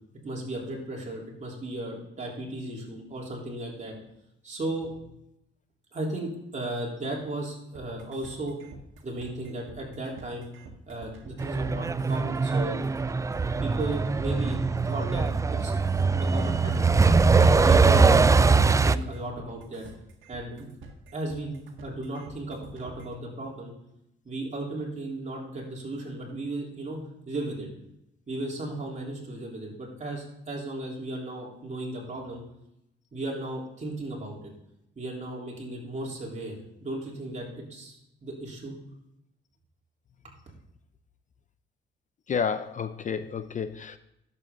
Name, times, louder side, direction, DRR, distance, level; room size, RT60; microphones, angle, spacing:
voice 1, 0.2-4.0 4.4-5.0 5.9-8.6 9.0-10.5 10.9-12.8 13.6-15.7 16.2-16.8 17.3-19.8 20.3-20.8 21.1-23.7 24.3-27.0 27.3-27.7 28.3-32.4 33.1-34.5 35.0-36.6 36.8-38.7, right 2 dB, 35° right, -2 dB, 3.4 m, -35 dB
sound 1, 7.7-23.2, right 4 dB, 75° right, 1.6 m, -48 dB
Truck, 11.4-19.0, right 4 dB, 15° right, 0.3 m, -22 dB
voice 2, 42.3-44.0, left 6 dB, 40° left, 11 dB, 0.5 m, -30 dB
10.5 x 7.6 x 3.7 m, 0.82 s
cardioid pair, 90°, 20 cm